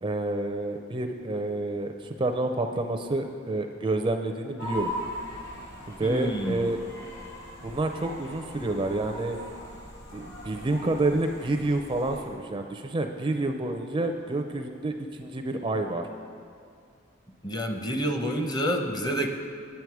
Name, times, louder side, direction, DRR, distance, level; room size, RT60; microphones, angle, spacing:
voice 1, 0.0-4.9 5.9-6.8 7.6-9.4 10.1-16.0, right 2 dB, 25° right, 5 dB, 0.4 m, -29 dB
sound 1, 4.6-12.2, equal, 60° left, 2.4 m, -40 dB
voice 2, 6.0-6.6 17.4-19.3, equal, 20° left, 4 dB, 0.7 m, -28 dB
9.2 x 8.7 x 4.8 m, 2.4 s
head